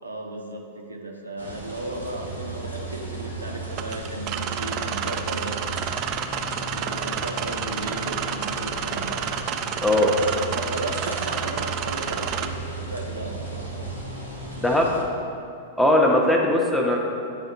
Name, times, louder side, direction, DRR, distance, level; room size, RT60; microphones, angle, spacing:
voice 1, 0.0-5.8 6.7-9.3 10.1-14.5, right 2 dB, 80° right, 1 dB, 0.7 m, -35 dB
sound 1, 1.4-15.0, right 1 dB, 90° left, 1.0 m, -38 dB
sound 2, 2.1-14.7, right 5 dB, 55° left, 0.6 m, -38 dB
sound 3, 3.7-12.5, right 8 dB, 35° right, 0.3 m, -30 dB
voice 2, 9.8-10.1 14.6-14.9 15.8-17.0, left 1 dB, 5° left, -1 dB, 0.7 m, -19 dB
9.9 x 3.5 x 2.7 m, 2.5 s
figure-of-eight pair, 95°, 0 cm